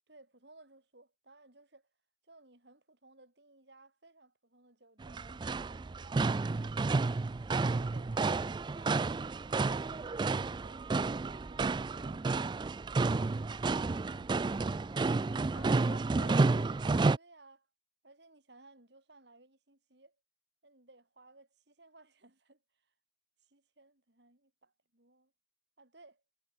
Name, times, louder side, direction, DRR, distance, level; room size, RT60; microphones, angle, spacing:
voice 1, 0.1-1.9 2.2-6.8 7.5-9.8 10.4-12.5 17.1-17.7 18.0-20.2 20.6-22.9 23.4-25.3 25.8-26.2, right 2 dB, 60° right, 3.8 m, -60 dB
sound 1, 5.0-17.2, right 3 dB, 25° right, 0.3 m, -31 dB
voice 2, 15.5-16.9, left 3 dB, 80° left, 3.8 m, -52 dB
head